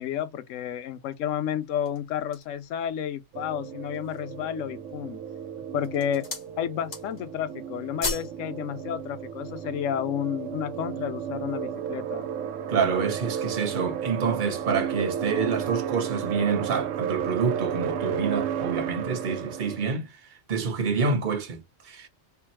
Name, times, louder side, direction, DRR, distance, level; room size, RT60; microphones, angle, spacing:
voice 1, 0.0-5.2 5.7-6.3 6.6-12.3, left 9 dB, 90° left, 0.9 m, -31 dB
sound 1, 1.6-2.6 3.2-3.3 3.8-4.4 5.1-5.4 5.8-6.5 6.8-7.3 7.6-8.4 8.7-8.8, left 3 dB, 65° left, 1.7 m, -35 dB
sound 2, 3.3-19.9, right 8 dB, 80° right, 0.9 m, -33 dB
voice 2, 12.7-20.1 20.5-22.1, right 5 dB, 45° right, 0.9 m, -27 dB
3.5 x 2.9 x 3.0 m
omnidirectional pair, 1.3 m